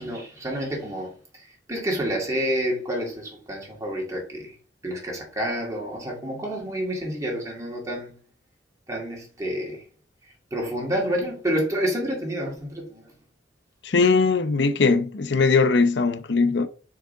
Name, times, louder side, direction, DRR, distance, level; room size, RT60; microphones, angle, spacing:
voice 1, 0.0-4.5 4.8-8.2 8.9-9.8 10.5-13.1, equal, 15° right, 2.3 m, -29 dB
voice 2, 13.8-16.7, left 4 dB, 65° left, 0.7 m, -20 dB
6.6 x 4.8 x 3.8 m
head